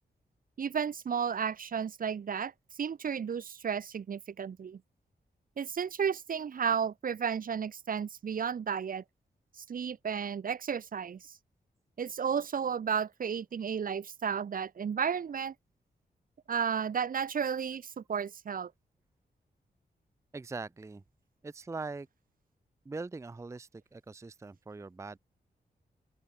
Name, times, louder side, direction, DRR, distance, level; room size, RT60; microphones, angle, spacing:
voice 1, 0.6-2.5 2.8-4.8 5.6-9.0 9.7-11.2 12.0-15.5 16.5-18.7, right 7 dB, 55° right, 1.0 m, -33 dB
voice 2, 20.3-21.0 21.4-22.1 22.9-25.2, right 3 dB, 15° right, 0.5 m, -41 dB
open air
wide cardioid pair, 150°, 17 cm